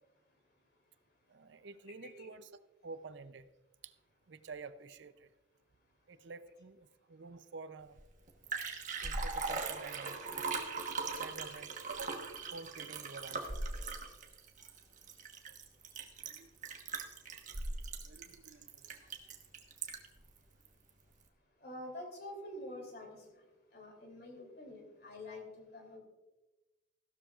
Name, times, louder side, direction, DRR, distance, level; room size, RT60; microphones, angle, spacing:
voice 1, 1.3-2.5 2.8-3.5 3.8-4.0 4.3-5.3 6.1-8.0 9.0-10.8 11.1-13.6 15.5-15.6 16.2-16.5 18.0-19.0, right 4 dB, 65° right, 12 dB, 0.5 m, -50 dB
Liquid, 8.0-8.1 8.3-20.2 20.6-20.7, right 4 dB, 40° right, 1.2 m, -40 dB
voice 2, 21.6-23.2 23.7-26.0, left 1 dB, 50° left, 2 dB, 2.9 m, -47 dB
15.5 x 12.5 x 2.4 m, 1.1 s
head